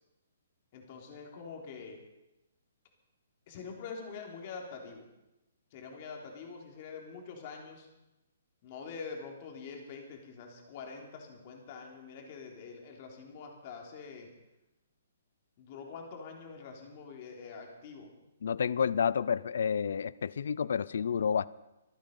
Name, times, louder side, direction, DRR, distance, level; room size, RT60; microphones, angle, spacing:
voice 1, 0.7-2.0 3.5-5.1 5.7-7.9 8.6-14.3 15.6-18.1, left 5 dB, 35° left, 1 dB, 3.5 m, -45 dB
voice 2, 18.4-21.5, left 7 dB, 70° left, 20 dB, 0.5 m, -30 dB
25.0 x 9.1 x 5.5 m, 0.95 s
hypercardioid pair, 165°, 0 cm